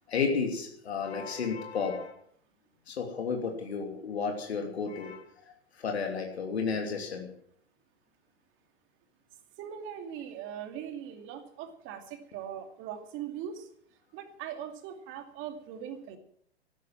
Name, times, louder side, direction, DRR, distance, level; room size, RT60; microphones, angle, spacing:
voice 1, 0.1-2.1 2.9-5.3 5.7-7.3, left 5 dB, 75° left, 2 dB, 3.0 m, -32 dB
voice 2, 9.6-13.7 14.1-16.2, right 9 dB, 35° right, 6 dB, 2.6 m, -40 dB
13.5 x 12.0 x 7.4 m, 0.66 s
figure-of-eight pair, 100°, 33 cm